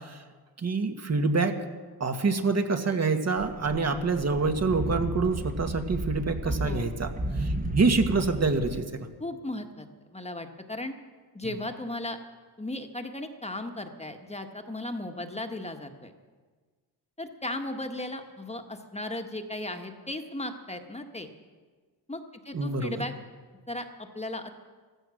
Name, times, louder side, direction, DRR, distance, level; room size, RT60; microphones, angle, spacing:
voice 1, 0.6-1.6 2.0-7.1 7.4-8.9 22.5-23.0, right 4 dB, 40° right, 6 dB, 1.8 m, -26 dB
sound 1, 3.4-8.8, right 1 dB, 20° right, 1.4 m, -33 dB
voice 2, 6.4-6.9 9.2-10.9 11.3-12.2 12.6-16.1 17.2-21.3 22.1-23.1 23.7-24.5, left 1 dB, 15° left, 6 dB, 1.6 m, -36 dB
15.5 x 14.5 x 6.4 m, 1.4 s
cardioid pair, 75°, 41 cm